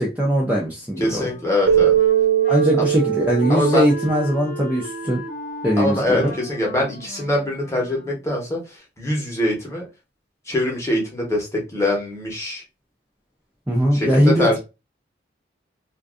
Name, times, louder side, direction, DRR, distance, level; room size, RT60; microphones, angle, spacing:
voice 1, 0.0-1.3 2.5-5.2 5.6-6.3 13.7-14.6, equal, 10° right, 0.4 m, -20 dB
Wind instrument woodwind instrument, 1.0-8.4, left 1 dB, 45° left, 0.7 m, -37 dB
voice 2, 1.0-1.9 3.5-3.9 5.8-9.8 10.5-12.6 13.9-14.6, left 1 dB, 15° left, 0.8 m, -23 dB
Keyboard (musical), 1.7-4.9, right 10 dB, 85° right, 0.5 m, -20 dB
2.5 x 2.3 x 2.3 m
head